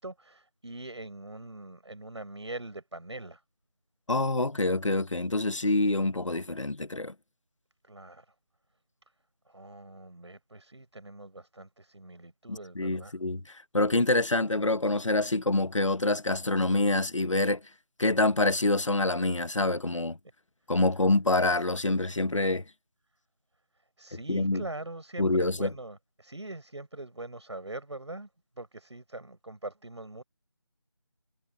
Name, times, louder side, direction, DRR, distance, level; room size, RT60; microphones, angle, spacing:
voice 1, 0.0-3.4 7.8-8.2 9.5-13.1 24.0-28.3 28.6-30.2, right 2 dB, 65° right, 6.1 m, -42 dB
voice 2, 4.1-7.1 12.5-17.6 18.0-20.2 20.7-22.6 24.3-24.6 25.2-25.7, left 2 dB, 85° left, 1.4 m, -26 dB
figure-of-eight pair, 175°, 16 cm